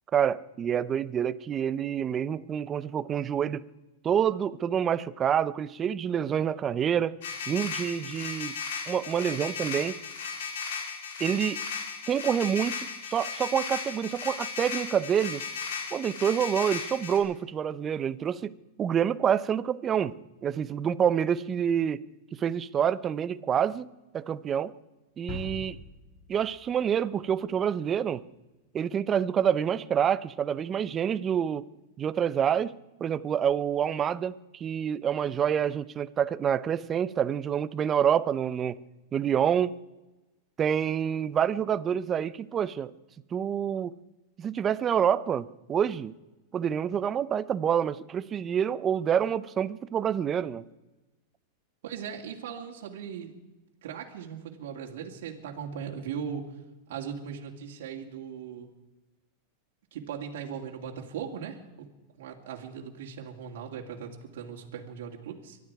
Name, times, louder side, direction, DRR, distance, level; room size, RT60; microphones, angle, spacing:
voice 1, 0.1-3.6 4.0-7.1 7.5-8.5 8.9-10.0 11.2-11.6 12.1-15.4 15.9-18.5 18.8-20.1 20.4-22.0 22.3-23.9 24.1-24.7 25.2-25.8 26.3-28.2 28.7-31.6 32.0-32.7 33.0-38.8 39.1-39.7 40.6-42.9 43.3-43.9 44.4-46.1 46.5-50.6, right 8 dB, 25° right, 16 dB, 0.6 m, -27 dB
sound 1, 7.2-17.2, left 5 dB, 75° left, 3.8 m, -36 dB
sound 2, 25.3-27.3, left 2 dB, 35° left, 4.8 m, -42 dB
voice 2, 51.8-53.3 53.8-56.4 56.9-58.7 59.9-61.9 62.2-65.6, right 7 dB, 70° right, -1 dB, 2.4 m, -38 dB
24.0 x 12.0 x 4.8 m, 1.1 s
supercardioid pair, 140°, 0 cm